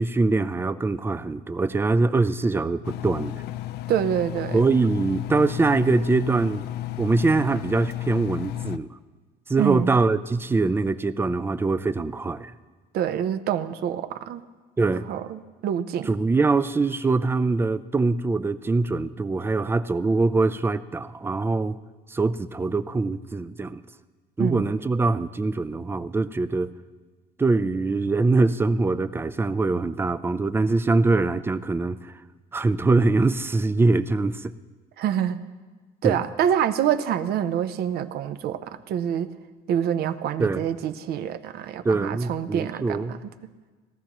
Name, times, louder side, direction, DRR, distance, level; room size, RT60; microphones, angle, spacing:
voice 1, 0.0-3.4 4.5-6.6 7.0-8.9 9.5-12.5 14.8-15.1 16.1-21.8 22.1-23.8 24.4-26.7 27.4-32.0 32.5-34.5 36.0-36.2 40.4-40.6 41.8-43.2, right 3 dB, 15° right, 14 dB, 0.4 m, -23 dB
Engine, 2.8-8.8, left 15 dB, 75° left, 0.4 m, -33 dB
voice 2, 3.9-4.7 9.6-9.9 12.9-14.4 15.1-16.2 24.4-24.6 35.0-35.4 36.0-39.3 39.7-43.3, right 9 dB, 70° right, 11 dB, 0.6 m, -26 dB
18.5 x 13.0 x 3.0 m, 1.4 s
cardioid pair, 110°, 17 cm